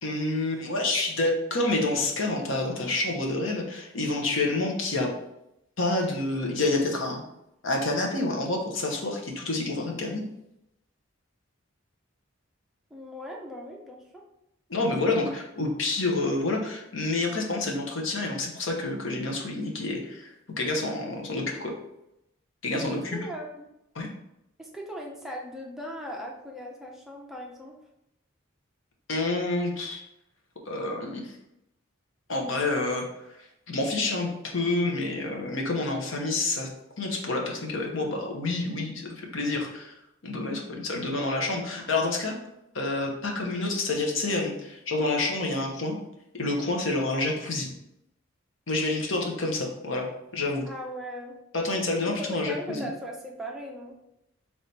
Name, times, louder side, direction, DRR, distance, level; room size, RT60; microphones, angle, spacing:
voice 1, 0.0-5.1 5.8-7.2 7.6-10.3 14.7-20.3 20.6-21.7 22.6-23.2 23.9-24.1 29.1-30.0 30.7-31.4 32.3-33.0 33.7-34.3 34.5-36.7 37.0-39.9 40.2-42.4 42.7-46.0 46.3-47.7 48.7-50.6 51.5-52.9, left 2 dB, 70° left, 1 dB, 0.9 m, -28 dB
voice 2, 12.9-14.2 22.7-23.7 24.6-27.8 50.7-51.4 52.0-54.0, equal, ahead, -2 dB, 0.6 m, -38 dB
4.2 x 3.2 x 3.3 m, 0.84 s
head